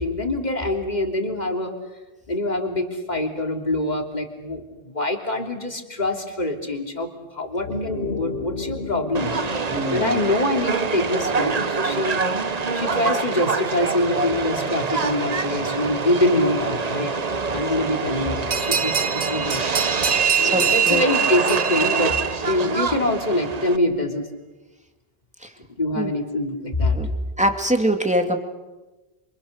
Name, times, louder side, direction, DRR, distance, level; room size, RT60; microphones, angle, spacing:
voice 1, 0.0-1.7 2.3-7.1 7.3-9.3 9.9-12.2 12.7-17.1 17.4-19.6 20.3-24.3 25.8-27.0, left 1 dB, 40° left, 3 dB, 3.3 m, -24 dB
sound 1, 7.5-12.3, left 3 dB, 60° left, 1.3 m, -34 dB
Subway metro underground, 9.1-23.8, right 5 dB, 40° right, 1.0 m, -25 dB
voice 2, 9.7-10.2 20.4-21.0 25.4-25.5 25.9-26.1 26.9-27.1 27.4-28.4, equal, 5° right, 4 dB, 2.5 m, -23 dB
sound 2, 18.5-22.7, right 6 dB, 70° right, 1.5 m, -28 dB
27.5 x 27.5 x 6.6 m, 1.1 s
omnidirectional pair, 1.2 m